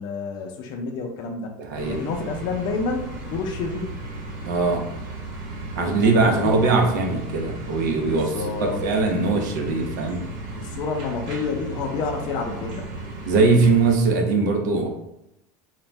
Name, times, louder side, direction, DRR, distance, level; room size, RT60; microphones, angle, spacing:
voice 1, 0.0-1.5 1.9-4.0 6.0-6.6 8.0-8.8 10.5-12.9, left 4 dB, 50° left, 2 dB, 0.4 m, -29 dB
voice 2, 1.6-2.0 4.4-4.8 5.8-10.2 13.3-14.9, right 3 dB, 85° right, 2 dB, 0.5 m, -21 dB
sound 1, 1.7-13.9, right 2 dB, 55° right, 0.9 m, -35 dB
2.5 x 2.1 x 3.1 m, 0.84 s
supercardioid pair, 115°, 9 cm